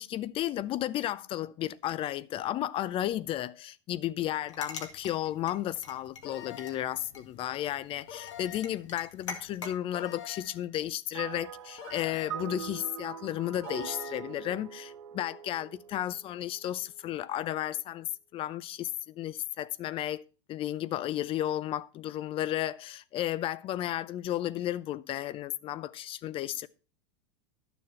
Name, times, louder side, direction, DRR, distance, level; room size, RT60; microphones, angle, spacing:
voice 1, 0.0-26.7, left 12 dB, 35° left, 0.6 m, -33 dB
sound 1, 4.4-9.8, left 5 dB, 90° left, 2.0 m, -45 dB
sound 2, 6.2-7.0 8.1-8.8 9.9-10.7 11.8-12.5 13.6-14.2, left 10 dB, 60° left, 1.9 m, -45 dB
sound 3, 11.1-16.7, right 9 dB, 70° right, 0.8 m, -42 dB
11.5 x 7.0 x 4.4 m
hypercardioid pair, 105°, 15 cm